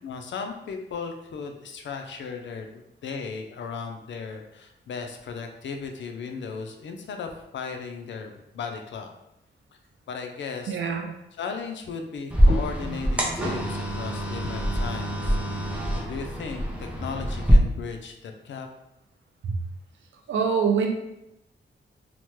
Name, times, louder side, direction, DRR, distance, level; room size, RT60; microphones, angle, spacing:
voice 1, 0.0-9.1 10.1-10.8 11.4-18.7, left 5 dB, 65° left, 4 dB, 0.4 m, -36 dB
voice 2, 10.7-11.1 19.4-19.6 20.3-20.9, right 6 dB, 75° right, 4 dB, 0.5 m, -24 dB
sound 1, 12.3-17.5, equal, 5° right, 0.5 m, -25 dB
3.0 x 2.1 x 3.0 m, 0.85 s
wide cardioid pair, 105°, 20 cm